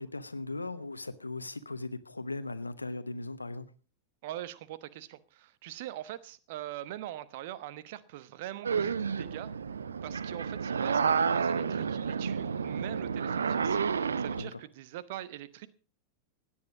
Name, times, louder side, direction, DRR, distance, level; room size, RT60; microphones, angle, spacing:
voice 1, 0.0-3.6 14.4-14.6, left 2 dB, 80° left, 0.9 m, -38 dB
voice 2, 4.2-9.5 10.0-15.7, right 13 dB, 50° right, 1.1 m, -43 dB
sound 1, 8.6-14.4, right 6 dB, 70° right, 0.8 m, -30 dB
17.0 x 10.5 x 5.0 m
figure-of-eight pair, 90°, 0 cm